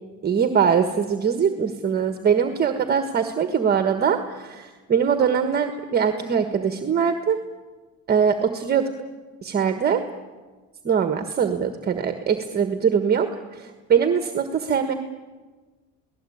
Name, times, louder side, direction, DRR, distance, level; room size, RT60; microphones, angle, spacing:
voice 1, 0.2-7.4 8.1-8.9 9.4-10.0 10.8-14.9, right 7 dB, 35° right, 7 dB, 1.5 m, -22 dB
29.5 x 18.5 x 8.7 m, 1.3 s
cardioid pair, 130°, 30 cm